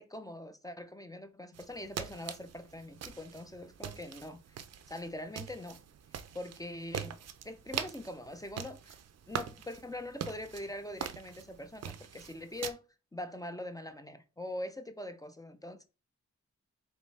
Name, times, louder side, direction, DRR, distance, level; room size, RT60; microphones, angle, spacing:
voice 1, 0.0-4.6 4.9-5.8 6.3-7.2 7.4-9.0 9.3-12.8 13.1-15.8, left 1 dB, 10° left, 0.4 m, -43 dB
sound 1, 1.5-12.7, right 8 dB, 55° right, 0.4 m, -43 dB
3.5 x 3.0 x 4.0 m
wide cardioid pair, 105°, 31 cm